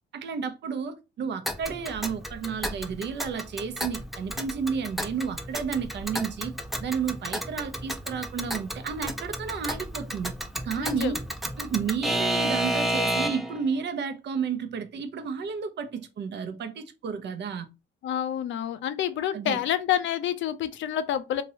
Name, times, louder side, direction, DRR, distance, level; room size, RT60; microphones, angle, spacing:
voice 1, 0.1-6.5 6.8-10.3 10.6-11.2 11.6-17.7 19.3-19.6, right 6 dB, 60° right, 0.7 m, -32 dB
Alarm / Clock, 1.5-13.6, right 1 dB, ahead, 0.5 m, -32 dB
voice 2, 10.8-11.1 18.0-21.4, left 10 dB, 70° left, 0.5 m, -28 dB
2.9 x 2.9 x 2.7 m
cardioid pair, 90°, 20 cm